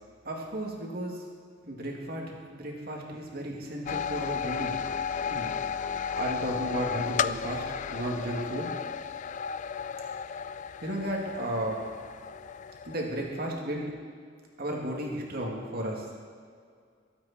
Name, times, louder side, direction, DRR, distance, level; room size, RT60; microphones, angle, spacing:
voice 1, 0.2-1.2 1.6-4.8 5.3-5.5 6.2-8.7 10.8-11.8 12.8-13.9 14.6-16.1, right 1 dB, 55° right, -1 dB, 2.5 m, -34 dB
sound 1, 3.9-13.5, left 7 dB, 40° left, 0.3 m, -34 dB
22.0 x 8.8 x 4.4 m, 2.1 s
head